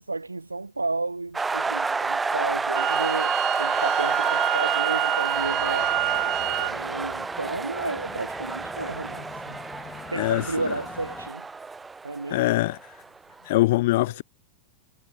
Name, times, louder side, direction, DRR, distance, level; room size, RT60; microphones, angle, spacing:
voice 1, 0.1-9.6 10.1-11.5 12.0-12.4, right 3 dB, 80° right, 1.0 m, -32 dB
sound 1, 1.3-13.0, right 4 dB, 10° right, 2.1 m, -29 dB
Wind instrument woodwind instrument, 2.7-6.7, right 39 dB, 45° right, 1.6 m, -27 dB
sound 2, 5.3-11.3, left 11 dB, 30° left, 7.2 m, -46 dB
voice 2, 12.3-12.8 13.5-14.2, left 18 dB, 50° left, 0.4 m, -22 dB
figure-of-eight pair, 90°, 0 cm